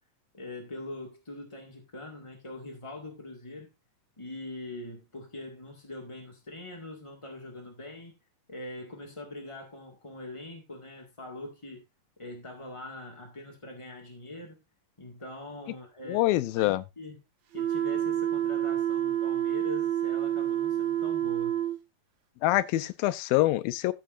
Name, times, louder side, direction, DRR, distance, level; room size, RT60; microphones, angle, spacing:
voice 1, 0.3-3.7 4.2-8.1 8.5-11.8 12.2-14.6 15.0-16.2 16.6-17.2 17.5-21.6, left 2 dB, 20° left, 0.8 m, -43 dB
voice 2, 16.1-16.8 22.4-23.9, left 16 dB, 90° left, 2.5 m, -25 dB
sound 1, 17.5-21.8, right 11 dB, 80° right, 3.0 m, -28 dB
14.0 x 8.3 x 2.5 m
omnidirectional pair, 4.1 m